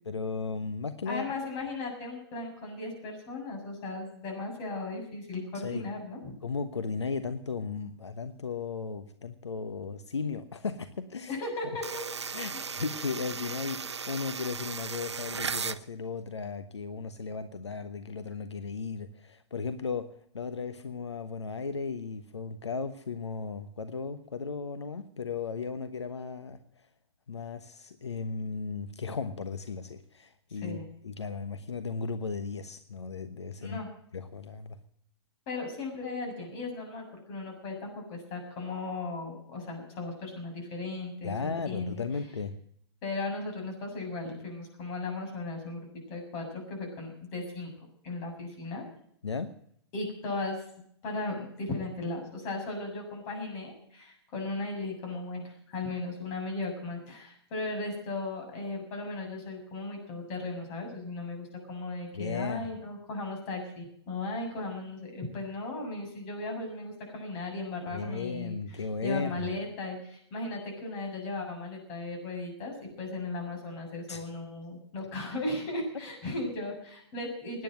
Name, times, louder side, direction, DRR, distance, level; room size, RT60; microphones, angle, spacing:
voice 1, 0.0-1.3 5.6-5.9 6.4-11.3 12.3-20.1 20.3-26.6 27.3-33.8 34.1-34.8 41.2-42.5 49.2-49.5 62.2-62.7 67.9-69.5 74.1-74.3, left 5 dB, 85° left, 10 dB, 1.1 m, -36 dB
voice 2, 1.1-6.4 11.3-12.8 30.5-30.8 33.6-33.9 35.5-42.0 43.0-47.7 48.0-48.9 49.9-50.6 51.0-77.6, left 2 dB, 40° left, 2 dB, 7.3 m, -36 dB
sound 1, 11.8-15.8, right 5 dB, 85° right, 0.7 m, -36 dB
17.0 x 10.0 x 7.6 m, 0.67 s
hypercardioid pair, 125°, 14 cm